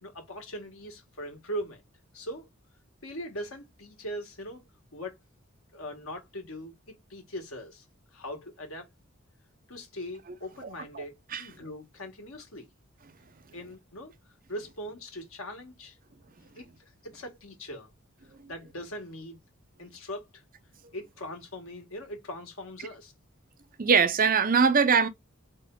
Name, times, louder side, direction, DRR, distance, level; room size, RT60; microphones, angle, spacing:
voice 1, 0.0-1.8 2.1-2.5 3.0-4.6 4.9-5.2 5.7-6.7 7.1-7.8 8.1-8.9 9.7-12.7 13.5-16.0 16.4-16.7 17.0-17.9 18.5-19.4 19.8-20.4 20.9-23.1, equal, 85° left, 1.7 m, -40 dB
voice 2, 23.8-25.1, right 5 dB, 45° right, 0.7 m, -21 dB
3.7 x 3.6 x 3.7 m
head